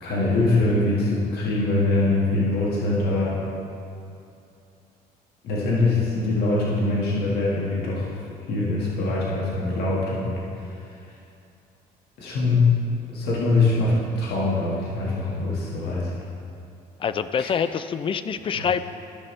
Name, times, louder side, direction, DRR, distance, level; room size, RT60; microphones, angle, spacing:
voice 1, 0.0-3.4 5.4-8.2 8.5-10.4 11.1-11.2 12.2-12.8 13.1-16.1 17.4-17.5 18.5-18.7, left 2 dB, 70° left, -5 dB, 1.7 m, -23 dB
voice 2, 17.0-18.8, left 7 dB, 30° left, 12 dB, 0.4 m, -25 dB
13.5 x 5.9 x 3.2 m, 2.6 s
cardioid pair, 110°, 17 cm